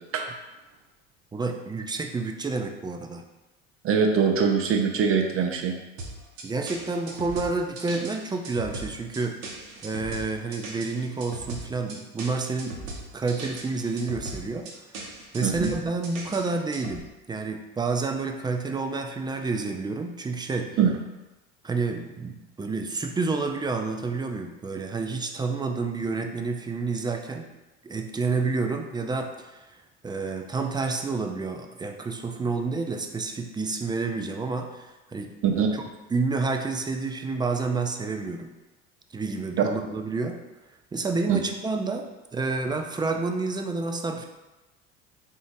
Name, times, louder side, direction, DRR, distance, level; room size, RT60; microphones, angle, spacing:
voice 1, 1.3-3.3 6.4-9.4 9.8-12.8 13.1-14.7 15.3-20.7 21.6-27.5 27.8-29.7 30.0-35.3 35.7-35.8 36.1-38.5 39.1-40.4 40.9-44.2, right 3 dB, 15° right, 4 dB, 0.3 m, -29 dB
voice 2, 3.8-5.7 15.4-15.7 20.8-20.9 35.4-35.7 39.6-39.7 41.3-41.4, right 6 dB, 45° right, 3 dB, 0.7 m, -22 dB
sound 1, 6.0-17.0, right 2 dB, 75° right, 1.0 m, -38 dB
3.9 x 3.7 x 2.6 m, 1.1 s
supercardioid pair, 85°, 32 cm